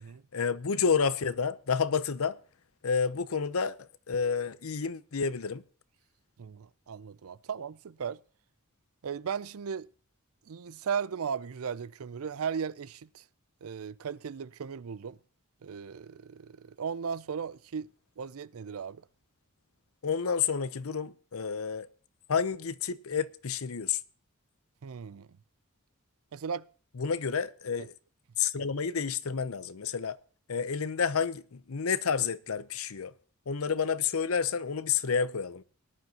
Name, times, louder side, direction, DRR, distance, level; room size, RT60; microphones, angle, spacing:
voice 1, 0.3-2.4 2.8-5.6 20.0-21.9 22.3-24.0 27.0-27.9 28.4-30.2 30.5-33.1 33.5-35.6, left 6 dB, 70° left, 0.7 m, -30 dB
voice 2, 6.4-8.2 9.0-9.9 10.5-13.2 13.6-15.2 15.6-17.9 18.2-19.0 24.8-25.3 26.3-26.7 27.8-27.9 28.6-28.7, right 6 dB, 70° right, 0.5 m, -36 dB
19.0 x 10.5 x 2.9 m
head